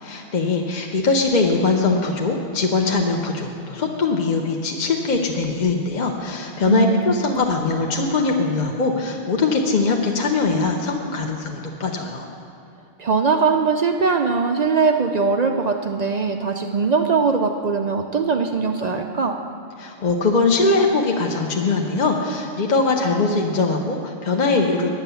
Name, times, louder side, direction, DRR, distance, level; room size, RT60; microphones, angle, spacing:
voice 1, 0.0-12.3 19.8-24.9, left 3 dB, 45° left, 1 dB, 0.8 m, -21 dB
voice 2, 6.6-7.1 13.0-19.4, right 5 dB, 60° right, 4 dB, 0.4 m, -21 dB
9.5 x 8.9 x 6.9 m, 2.6 s
omnidirectional pair, 1.3 m